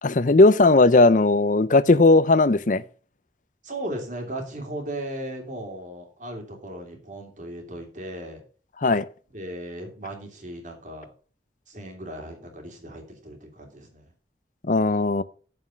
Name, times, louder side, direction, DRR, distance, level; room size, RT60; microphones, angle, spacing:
voice 1, 0.0-2.8 8.8-9.0 14.7-15.2, left 2 dB, 45° left, 0.6 m, -17 dB
voice 2, 3.6-8.4 9.3-11.1 11.7-14.1, right 1 dB, 45° right, 3.0 m, -36 dB
8.9 x 7.3 x 5.8 m
head